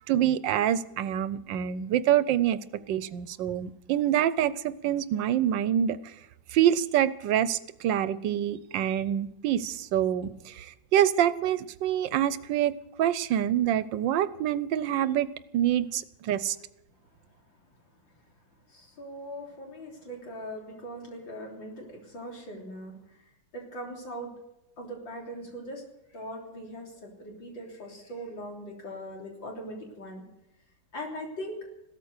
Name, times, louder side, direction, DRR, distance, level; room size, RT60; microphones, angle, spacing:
voice 1, 0.0-2.6 2.9-6.0 6.5-10.3 10.6-10.7 10.9-12.7 13.0-15.3 15.5-16.6, right 11 dB, 80° right, 1.4 m, -26 dB
voice 2, 18.0-18.3 18.7-24.3 24.8-25.8 26.1-30.2 30.9-31.6, equal, 80° left, 4.2 m, -41 dB
15.5 x 13.5 x 6.6 m
omnidirectional pair, 2.0 m